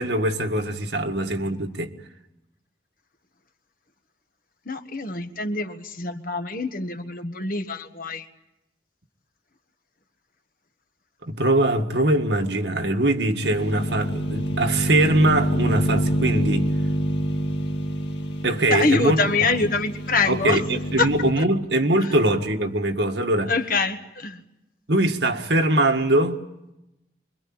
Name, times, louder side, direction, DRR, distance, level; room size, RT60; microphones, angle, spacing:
voice 1, 0.0-1.9 11.3-16.7 18.4-19.5 20.3-23.5 24.9-26.4, right 1 dB, 70° right, 1.8 m, -22 dB
voice 2, 4.7-8.3 18.7-20.6 21.0-21.1 21.4-21.5 23.5-24.4, left 3 dB, 50° left, 1.5 m, -25 dB
sound 1, 13.4-21.3, right 1 dB, 75° left, 2.0 m, -26 dB
26.0 x 23.0 x 8.8 m
head